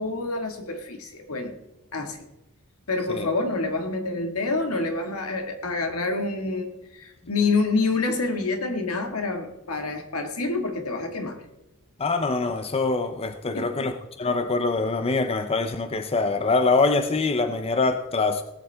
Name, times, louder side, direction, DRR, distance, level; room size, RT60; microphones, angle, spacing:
voice 1, 0.0-1.5 1.9-2.2 2.9-11.4 13.5-13.9, left 3 dB, 80° left, 5 dB, 1.8 m, -27 dB
voice 2, 12.0-18.4, left 3 dB, 25° left, 8 dB, 0.6 m, -24 dB
18.0 x 8.3 x 3.4 m, 0.93 s
head